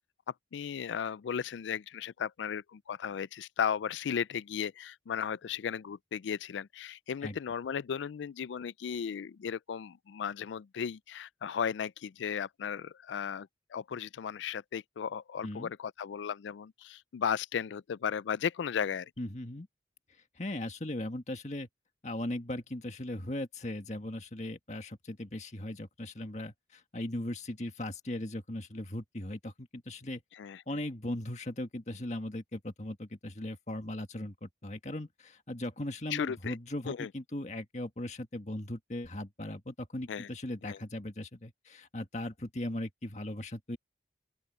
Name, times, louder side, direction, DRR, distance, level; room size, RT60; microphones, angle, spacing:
voice 1, 0.5-19.1 30.4-30.6 36.1-36.5 36.9-37.1 40.1-40.3 40.6-40.8, left 7 dB, 90° left, 0.4 m, -35 dB
voice 2, 19.2-19.7 20.4-21.7 22.0-30.2 30.7-43.8, left 1 dB, 40° left, 1.7 m, -38 dB
open air
head